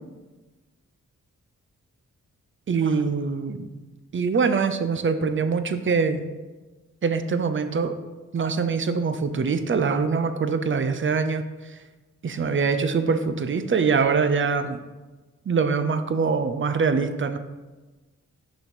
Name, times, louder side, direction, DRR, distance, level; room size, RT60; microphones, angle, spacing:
voice 1, 2.7-3.7 4.1-6.2 7.0-8.0 8.3-11.8 12.2-14.8 15.5-17.4, right 5 dB, 35° right, 10 dB, 0.6 m, -24 dB
6.1 x 3.2 x 5.2 m, 1.2 s
cardioid pair, 45°, 33 cm